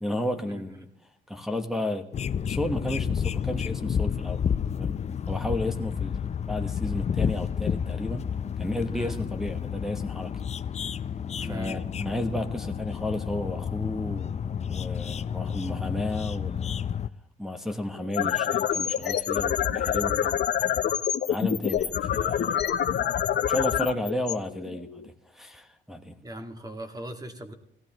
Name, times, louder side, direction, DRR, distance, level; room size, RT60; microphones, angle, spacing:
voice 1, 0.0-0.9 1.3-4.4 4.7-5.0 5.3-8.3 8.6-10.5 11.4-16.7 17.4-20.4 21.3-22.6 23.5-26.2, left 1 dB, ahead, 1.2 m, -33 dB
sound 1, 2.1-17.1, left 7 dB, 35° left, 0.5 m, -30 dB
voice 2, 11.4-11.8 26.2-27.5, equal, 20° right, 1.9 m, -39 dB
sound 2, 18.0-25.1, left 9 dB, 60° left, 0.8 m, -26 dB
17.5 x 14.5 x 3.0 m
cardioid pair, 90°, 20 cm